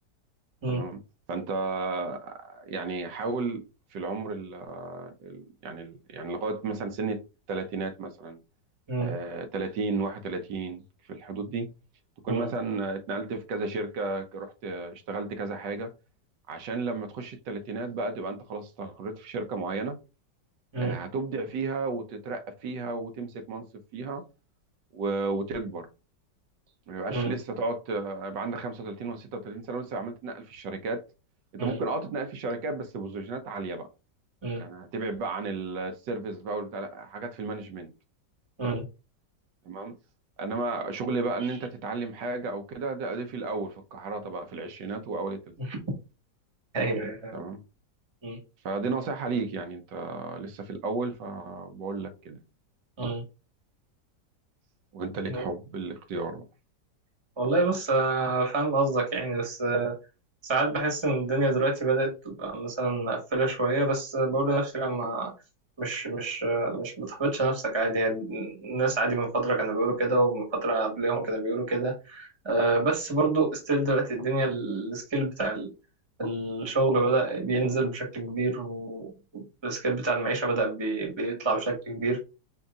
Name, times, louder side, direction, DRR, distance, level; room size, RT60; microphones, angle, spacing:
voice 1, 0.7-1.0 1.3-3.6 3.9-7.2 7.5-8.4 9.0-11.7 12.2-15.9 16.5-20.0 20.8-23.7 23.9-24.2 24.9-25.9 26.9-31.0 31.6-33.9 34.6-37.9 39.7-40.0 40.4-45.5 47.3-47.6 48.6-52.4 54.9-56.4, right 3 dB, 80° right, 1.4 m, -33 dB
voice 2, 46.7-47.3 48.2-48.4 53.0-53.2 55.3-55.4 57.4-59.9 60.4-65.3 65.8-75.7 76.2-82.2, right 2 dB, 20° right, 1.1 m, -27 dB
5.2 x 2.8 x 2.4 m
omnidirectional pair, 1.9 m